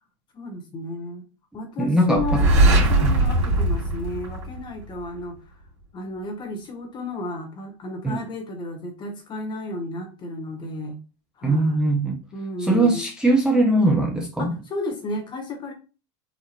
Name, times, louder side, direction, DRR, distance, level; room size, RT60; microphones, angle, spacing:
voice 1, 0.3-1.2 1.5-5.4 5.9-11.0 11.4-11.9 12.3-13.1 14.4-15.7, left 2 dB, 30° left, 1.2 m, -33 dB
voice 2, 1.8-2.4 3.0-3.1 8.0-8.2 11.4-12.2 12.6-14.5, right 1 dB, 5° right, 0.6 m, -20 dB
sound 1, 2.1-5.0, right 2 dB, 90° right, 2.1 m, -20 dB
4.2 x 2.6 x 2.9 m
supercardioid pair, 120°, 15 cm